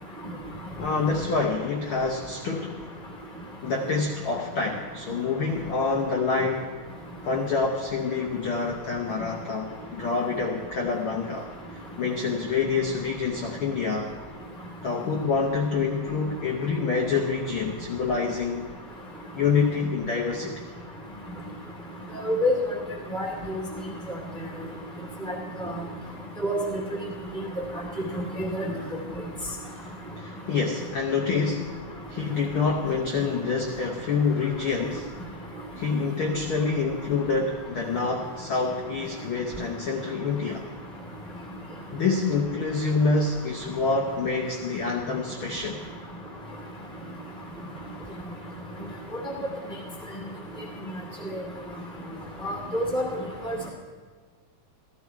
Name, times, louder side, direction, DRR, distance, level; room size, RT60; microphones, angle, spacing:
voice 1, 0.8-2.8 3.6-6.7 7.2-14.1 14.8-18.7 19.3-20.7 30.2-31.8 32.1-35.1 35.8-40.7 41.9-45.8 52.1-52.2, left 4 dB, 65° left, 0 dB, 1.3 m, -27 dB
voice 2, 22.2-22.6 23.1-23.6 26.4-26.6 28.1-28.7 52.4-53.1 53.4-53.6, equal, 30° right, 0 dB, 1.3 m, -26 dB
14.5 x 13.5 x 4.6 m, 1.5 s
omnidirectional pair, 3.6 m